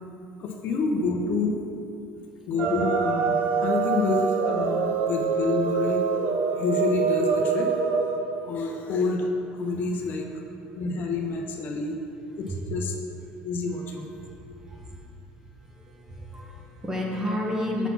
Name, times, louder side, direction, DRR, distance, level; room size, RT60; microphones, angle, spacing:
voice 1, 0.4-1.6 2.5-6.1 6.5-7.7 8.4-10.3 10.7-12.0 12.4-13.0 13.4-14.1, left 3 dB, 50° left, 1 dB, 0.7 m, -28 dB
sound 1, 2.6-8.2, right 5 dB, 60° right, 0.6 m, -25 dB
voice 2, 14.2-15.1 15.6-17.9, left 1 dB, 10° right, -2 dB, 1.0 m, -32 dB
7.0 x 4.1 x 5.7 m, 2.8 s
cardioid pair, 135°, 4 cm